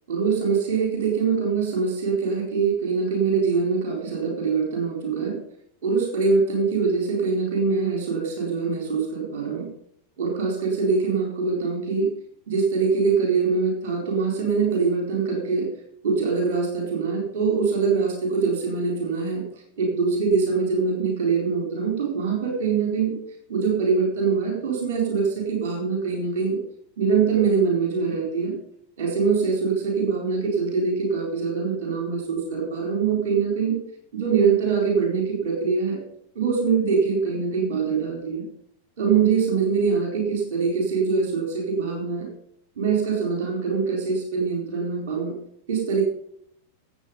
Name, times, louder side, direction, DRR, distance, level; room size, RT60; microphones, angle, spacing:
voice 1, 0.1-5.4 5.8-9.7 10.2-12.1 12.5-15.7 16.0-19.4 19.8-23.2 23.5-26.6 27.0-28.5 29.0-33.8 34.1-36.0 36.3-38.4 39.0-42.3 42.8-45.3 45.7-46.0, right 5 dB, 55° right, 1 dB, 4.2 m, -23 dB
16.0 x 8.1 x 5.5 m, 0.68 s
figure-of-eight pair, 90°, 0 cm